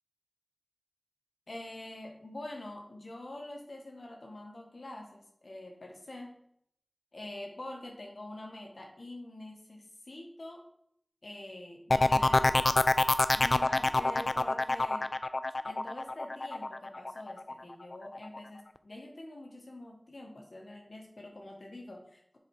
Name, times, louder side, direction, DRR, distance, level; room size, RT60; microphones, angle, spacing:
voice 1, 1.5-6.4 7.1-10.6 11.2-13.1 13.3-15.1 15.6-22.4, left 1 dB, 80° left, 0 dB, 1.5 m, -45 dB
sound 1, 11.9-17.5 17.9-18.4, left 2 dB, 65° left, 0.4 m, -26 dB
7.3 x 4.8 x 4.8 m, 0.70 s
wide cardioid pair, 50°, 0 cm